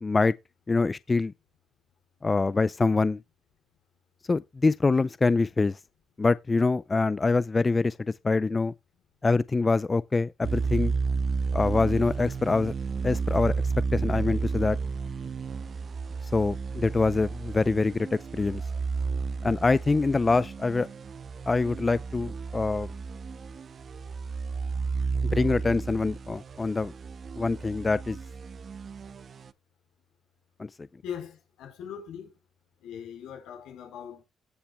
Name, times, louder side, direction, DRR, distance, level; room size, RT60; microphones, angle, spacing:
voice 1, 0.0-0.3 0.7-1.3 2.2-3.2 4.3-5.8 6.2-7.9 8.2-8.7 9.2-10.9 11.5-12.7 13.0-13.5 13.9-14.8 16.3-18.6 19.4-20.9 21.5-22.9 25.3-26.9 27.4-28.2 30.6-30.7, left 3 dB, 25° left, 0.4 m, -25 dB
sound 1, 10.4-29.5, right 4 dB, 45° right, 0.6 m, -32 dB
voice 2, 31.0-32.3 32.8-34.2, left 8 dB, 90° left, 4.2 m, -40 dB
17.0 x 7.1 x 2.2 m
cardioid pair, 90°, 0 cm